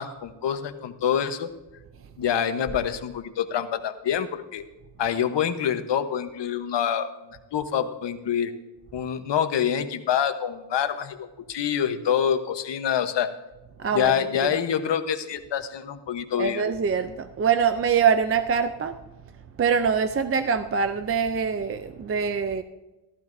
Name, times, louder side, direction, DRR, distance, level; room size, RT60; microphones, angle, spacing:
voice 1, 0.0-1.5 2.2-4.6 5.0-8.5 8.9-13.3 13.9-16.6, left 8 dB, 70° left, 1.1 m, -26 dB
sound 1, 2.7-4.7, left 1 dB, 45° left, 2.4 m, -45 dB
voice 2, 13.8-14.1 14.4-14.5 16.4-19.0 19.6-22.6, right 6 dB, 30° right, 0.4 m, -24 dB
15.0 x 14.0 x 2.6 m
wide cardioid pair, 170°, 44 cm